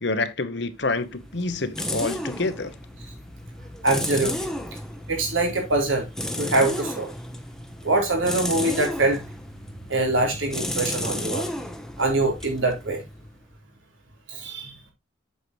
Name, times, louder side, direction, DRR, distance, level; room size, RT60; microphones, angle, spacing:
voice 1, 0.0-2.7, left 3 dB, 60° left, 1.0 m, -27 dB
Impact wrench in the open air, 0.8-13.5, left 1 dB, 5° left, 0.9 m, -33 dB
voice 2, 3.8-4.5 5.1-6.1 6.4-7.1 7.8-9.2 9.9-11.5 12.0-13.0 14.3-14.8, right 2 dB, 80° right, 3.9 m, -24 dB
8.1 x 7.7 x 3.1 m
head